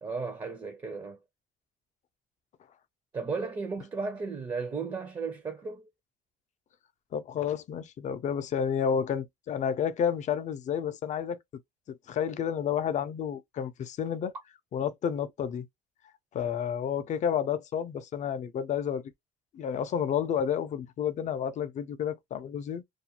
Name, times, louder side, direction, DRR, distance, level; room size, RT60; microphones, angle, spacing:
voice 1, 0.0-1.2 3.1-5.9, right 4 dB, 25° right, 0.5 m, -35 dB
voice 2, 7.1-11.4 11.9-14.3 14.7-15.7 16.3-19.0 19.5-22.8, left 8 dB, 45° left, 0.4 m, -30 dB
2.4 x 2.2 x 2.8 m
cardioid pair, 110°, 17 cm